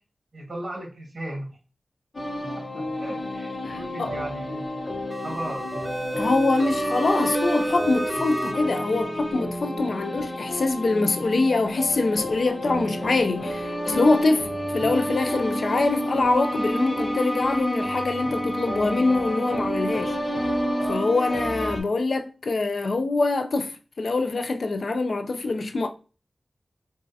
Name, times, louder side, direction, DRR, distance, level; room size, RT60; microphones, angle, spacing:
voice 1, 0.3-1.5 2.6-4.7 5.2-5.7, right 1 dB, 55° right, 1.5 m, -36 dB
sound 1, 2.1-21.8, equal, 35° left, 0.8 m, -29 dB
voice 2, 3.6-4.1 6.2-14.5 14.7-20.2 20.9-25.9, left 3 dB, 70° left, 0.4 m, -24 dB
sound 2, 5.1-8.5, right 1 dB, 25° right, 0.4 m, -31 dB
3.8 x 2.4 x 2.6 m
wide cardioid pair, 75°, 0 cm